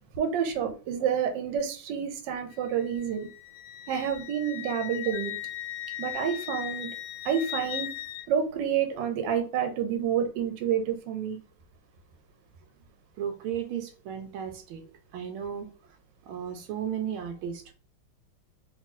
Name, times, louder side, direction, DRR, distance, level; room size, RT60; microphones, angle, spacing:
voice 1, 0.2-3.3 3.9-5.3 6.0-6.9 7.2-7.9 8.3-11.4, right 8 dB, 65° right, 5 dB, 1.3 m, -28 dB
Wind instrument woodwind instrument, 2.5-8.3, left 13 dB, 90° left, 1.5 m, -38 dB
voice 2, 13.2-15.7 16.3-17.7, right 8 dB, 90° right, 6 dB, 1.5 m, -35 dB
3.1 x 3.0 x 3.8 m, 0.37 s
omnidirectional pair, 2.3 m